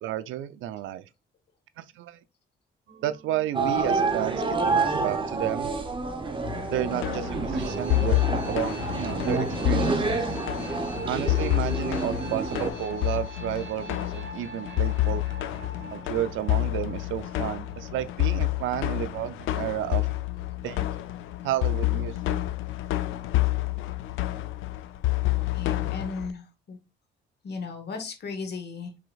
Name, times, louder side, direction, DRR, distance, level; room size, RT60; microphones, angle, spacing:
voice 1, 0.0-1.0 1.8-2.2 3.0-5.7 6.7-8.2 8.5-10.4 11.1-15.2 15.8-20.1 20.6-20.9 21.4-22.4, right 12 dB, 80° right, 0.4 m, -32 dB
sound 1, 2.9-20.7, right 2 dB, 65° right, 1.0 m, -45 dB
sound 2, 3.5-12.7, right 3 dB, 25° right, 0.8 m, -28 dB
sound 3, 6.4-26.3, left 16 dB, 85° left, 0.4 m, -29 dB
voice 2, 25.5-26.8 27.4-28.9, left 4 dB, 55° left, 1.3 m, -36 dB
4.9 x 3.4 x 2.3 m
cardioid pair, 90°, 20 cm